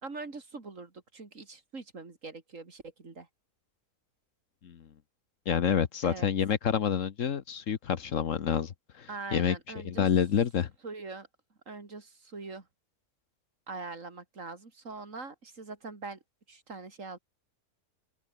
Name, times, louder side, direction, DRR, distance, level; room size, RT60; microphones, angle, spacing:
voice 1, 0.0-3.3 6.0-6.3 9.1-10.1 10.8-11.3 11.7-12.7 13.7-16.2 16.5-17.2, right 3 dB, 60° right, 3.2 m, -42 dB
voice 2, 5.5-9.6 9.8-10.7, left 8 dB, 60° left, 1.3 m, -28 dB
open air
omnidirectional pair, 1.6 m